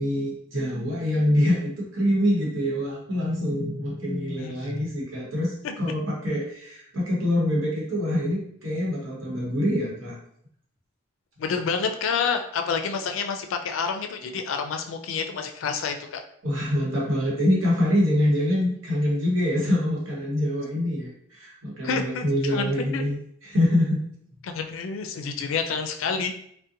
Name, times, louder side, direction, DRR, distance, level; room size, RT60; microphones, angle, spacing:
voice 1, 0.0-10.1 16.4-23.2 23.5-24.0, left 1 dB, 90° right, -4 dB, 1.0 m, -25 dB
voice 2, 11.4-16.2 21.8-23.1 24.4-26.3, left 5 dB, 85° left, 6 dB, 0.3 m, -28 dB
2.5 x 2.1 x 2.7 m, 0.67 s
head